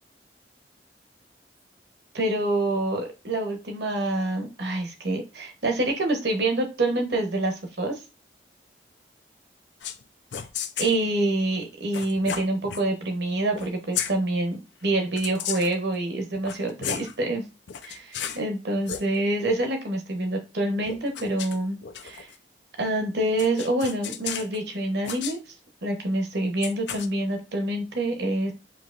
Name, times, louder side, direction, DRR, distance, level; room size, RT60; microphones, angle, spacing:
voice 1, 2.1-8.0 10.8-17.4 17.8-22.3 22.8-25.5 25.8-28.5, right 1 dB, 75° right, 3 dB, 1.0 m, -26 dB
sound 1, 9.8-10.0 10.3-11.0 11.9-12.8 13.5-14.1 15.2-15.8 16.3-17.1 17.7-18.4 18.8-19.0 20.9-22.4 23.4-24.6 25.0-25.4 26.6-27.1, left 8 dB, 85° left, 0.5 m, -34 dB
7.1 x 2.9 x 2.5 m, 0.30 s
head